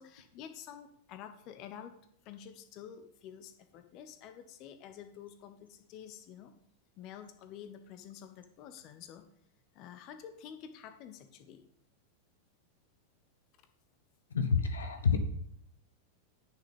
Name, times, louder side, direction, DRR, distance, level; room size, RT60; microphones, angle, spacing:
voice 1, 0.0-2.0 2.2-6.5 7.0-9.2 9.7-11.6, left 9 dB, 40° left, 8 dB, 0.9 m, -49 dB
voice 2, 14.3-15.2, left 5 dB, 70° left, 8 dB, 0.9 m, -28 dB
9.9 x 6.0 x 5.3 m, 0.69 s
figure-of-eight pair, 90°, 0 cm